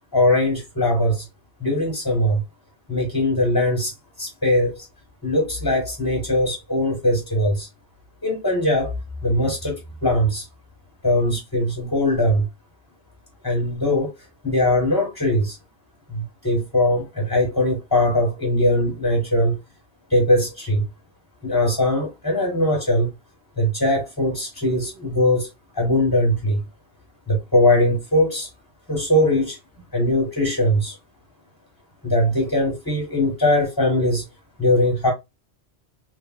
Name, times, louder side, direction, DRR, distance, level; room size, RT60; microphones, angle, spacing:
voice 1, 0.1-1.3 1.6-2.4 2.9-3.9 4.2-4.9 5.2-7.7 8.2-8.9 9.2-10.4 11.0-12.5 13.4-14.1 14.4-15.6 16.1-19.6 20.1-20.8 21.4-23.1 23.6-25.5 25.7-26.6 27.3-28.5 28.9-29.6 29.9-31.0 32.0-34.2 34.6-35.1, left 1 dB, 20° left, 0.7 m, -20 dB
3.1 x 2.6 x 2.3 m
omnidirectional pair, 1.2 m